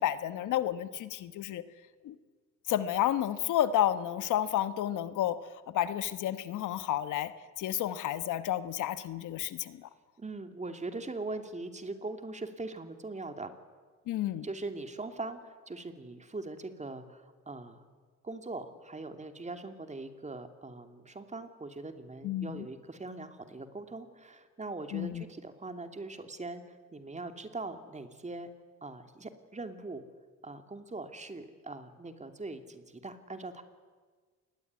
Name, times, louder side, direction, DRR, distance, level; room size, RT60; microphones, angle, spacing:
voice 1, 0.0-1.6 2.0-2.1 2.7-5.4 5.7-7.3 7.6-9.9 14.1-14.4 22.2-22.6 24.9-25.2, left 11 dB, 85° left, 13 dB, 1.3 m, -31 dB
voice 2, 10.2-13.5 14.4-17.8 18.2-28.5 28.8-30.0 30.4-33.6, right 3 dB, 25° right, 7 dB, 2.9 m, -41 dB
27.0 x 20.5 x 9.6 m, 1.5 s
cardioid pair, 90°, 30 cm